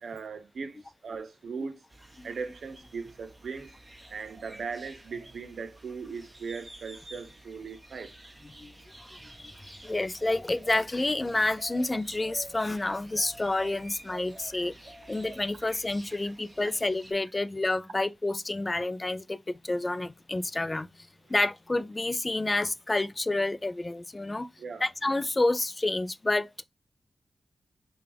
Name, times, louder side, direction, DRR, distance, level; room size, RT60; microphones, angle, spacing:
voice 1, 0.0-1.8 2.2-3.7 4.1-8.1 17.4-17.5 24.6-24.8, right 5 dB, 80° right, 0.7 m, -39 dB
sound 1, 1.9-17.1, right 1 dB, 30° right, 1.5 m, -49 dB
voice 2, 9.4-20.9 21.3-24.5 24.8-26.5, left 2 dB, 25° left, 0.4 m, -29 dB
6.7 x 2.3 x 3.4 m
cardioid pair, 55°, 0 cm